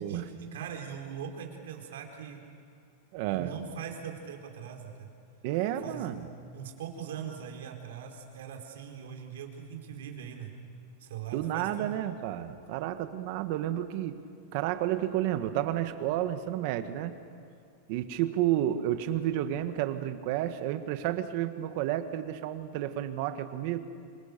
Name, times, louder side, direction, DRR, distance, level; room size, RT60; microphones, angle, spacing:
voice 1, 0.0-2.4 3.3-5.1 5.8-6.1 6.5-10.5 11.0-11.9, right 8 dB, 85° right, 2 dB, 4.4 m, -41 dB
voice 2, 3.1-3.5 5.4-6.3 11.3-14.2 14.5-17.1 17.9-23.8, right 12 dB, 45° right, 10 dB, 1.4 m, -31 dB
28.0 x 25.0 x 6.8 m, 2.4 s
supercardioid pair, 165°, 0 cm